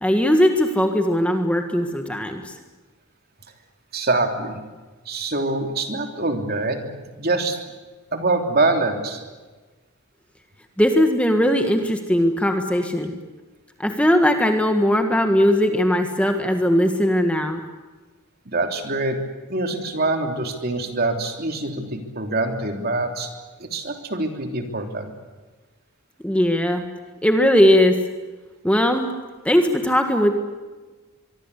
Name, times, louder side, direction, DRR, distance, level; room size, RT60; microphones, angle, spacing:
voice 1, 0.0-2.5 10.8-13.1 13.8-17.6 26.2-26.8 27.2-28.0 28.6-29.1 29.4-30.3, equal, 5° left, 5 dB, 1.6 m, -19 dB
voice 2, 3.9-4.6 5.0-6.9 7.2-7.6 8.1-9.2 18.4-19.2 19.5-23.3 23.6-25.1, right 2 dB, 45° right, 4 dB, 3.2 m, -24 dB
24.0 x 24.0 x 8.4 m, 1.3 s
head